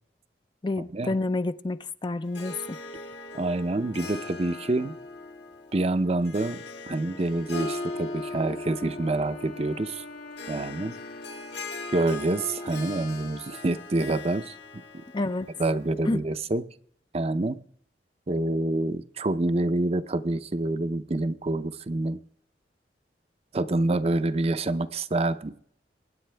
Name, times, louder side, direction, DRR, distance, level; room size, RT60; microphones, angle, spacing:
voice 1, 0.6-2.8 15.1-15.5 16.1-16.2, left 2 dB, 25° left, 0.4 m, -29 dB
Harp, 2.2-16.0, left 3 dB, 80° left, 2.0 m, -40 dB
voice 2, 3.3-5.0 5.7-10.0 10.5-10.9 11.9-14.8 15.6-16.6 17.1-17.6 18.3-22.2 23.5-25.5, right 2 dB, 35° right, 0.6 m, -27 dB
Wind instrument woodwind instrument, 7.4-12.9, left 3 dB, 55° left, 1.2 m, -46 dB
23.5 x 9.8 x 3.4 m
head